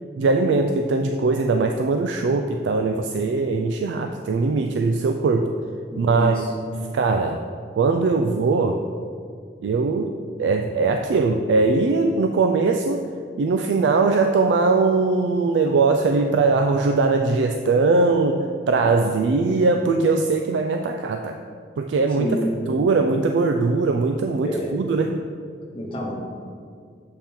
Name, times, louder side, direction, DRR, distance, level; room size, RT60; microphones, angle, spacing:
voice 1, 0.2-5.5 6.0-6.3 6.9-7.4 7.8-8.8 9.6-10.1 10.4-13.0 13.4-21.4 21.8-22.4 22.7-25.2, right 3 dB, 75° right, 4 dB, 0.3 m, -20 dB
voice 2, 5.9-6.5 22.2-22.6 24.4-24.7 25.7-26.1, equal, 30° left, -4 dB, 0.9 m, -27 dB
7.3 x 3.6 x 4.3 m, 2.2 s
head